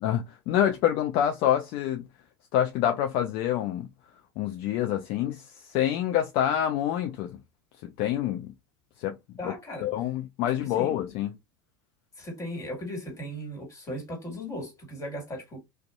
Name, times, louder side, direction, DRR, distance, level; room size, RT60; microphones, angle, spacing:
voice 1, 0.0-2.0 2.5-3.9 4.4-7.4 7.8-8.5 9.0-9.2 9.4-9.5 9.8-11.3, left 11 dB, 55° left, 0.4 m, -27 dB
voice 2, 9.4-9.9 10.6-10.9 12.2-15.6, equal, 25° left, 1.7 m, -37 dB
2.5 x 2.2 x 2.3 m
hypercardioid pair, 85°, 12 cm